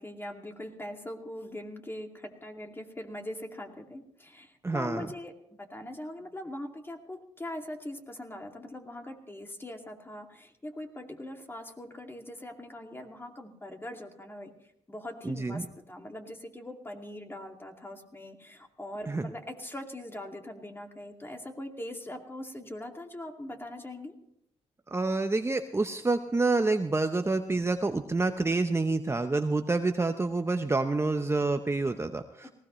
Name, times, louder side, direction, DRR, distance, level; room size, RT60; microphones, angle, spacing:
voice 1, 0.0-5.3 5.6-14.5 14.9-24.1, left 1 dB, 20° left, 3 dB, 2.4 m, -41 dB
voice 2, 4.6-5.1 15.2-15.6 19.1-19.3 24.9-32.5, right 3 dB, 20° right, 7 dB, 0.9 m, -28 dB
19.5 x 16.5 x 3.2 m, 0.75 s
cardioid pair, 60°, 12 cm